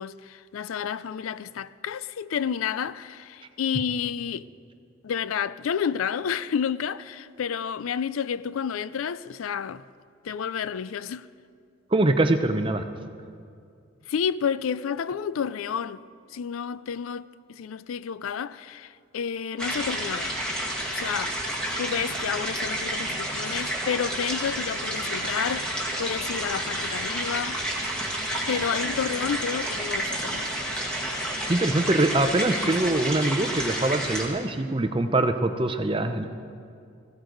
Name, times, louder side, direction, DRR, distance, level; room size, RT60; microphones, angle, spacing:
voice 1, 0.0-4.4 5.0-9.8 10.2-11.3 14.1-16.0 16.3-20.3 20.9-21.4 21.8-27.6 28.5-30.6, left 7 dB, 90° left, 0.4 m, -30 dB
voice 2, 11.9-12.8 31.5-36.2, right 2 dB, 25° right, 0.6 m, -23 dB
sound 1, 19.6-34.2, right 1 dB, 5° left, 1.9 m, -30 dB
20.5 x 15.0 x 3.9 m
head